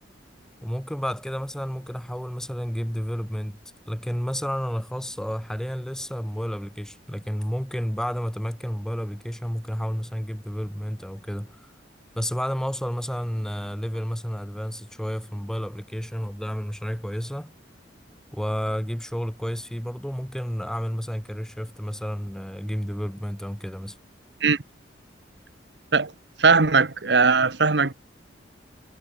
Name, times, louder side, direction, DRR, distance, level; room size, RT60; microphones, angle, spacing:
voice 1, 0.6-3.6 3.9-11.7 12.2-17.5 18.3-24.0, equal, 5° left, 1.1 m, -31 dB
voice 2, 26.4-27.9, right 4 dB, 70° right, 1.3 m, -19 dB
head